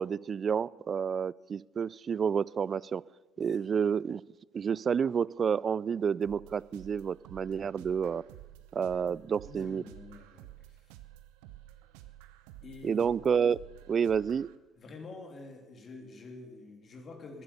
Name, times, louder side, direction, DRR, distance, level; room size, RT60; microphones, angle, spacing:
voice 1, 0.0-3.0 3.4-4.2 4.5-8.2 8.7-9.8 12.8-13.6 13.9-14.5, right 7 dB, 45° right, 22 dB, 0.3 m, -29 dB
sound 1, 6.2-14.6, right 15 dB, 75° right, 0.7 m, -52 dB
voice 2, 9.4-10.8 12.6-13.0 14.8-17.4, left 3 dB, 45° left, 3 dB, 2.9 m, -47 dB
14.0 x 10.0 x 6.8 m, 1.2 s
hypercardioid pair, 55°, 0 cm